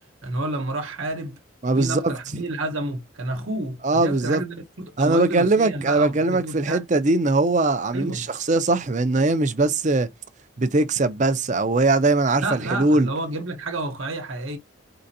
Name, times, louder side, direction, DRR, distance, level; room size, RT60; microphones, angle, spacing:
voice 1, 0.2-1.4 1.7-6.8 7.9-8.3 12.4-14.6, right 2 dB, 70° right, 1.1 m, -30 dB
voice 2, 1.6-2.4 3.8-4.4 5.0-10.1 10.6-13.1, right 2 dB, 35° right, 0.6 m, -21 dB
4.3 x 3.8 x 2.7 m
head